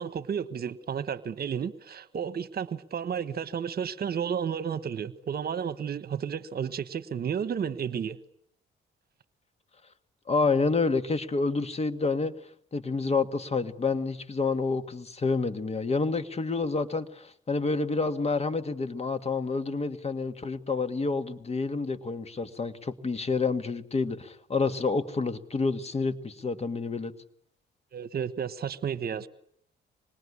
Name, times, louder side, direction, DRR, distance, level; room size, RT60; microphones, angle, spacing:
voice 1, 0.0-8.2 27.9-29.3, right 7 dB, 50° right, 1.3 m, -32 dB
voice 2, 10.3-12.3 12.7-27.1, left 4 dB, 30° left, 2.0 m, -28 dB
26.0 x 21.0 x 9.9 m
cardioid pair, 90°, 20 cm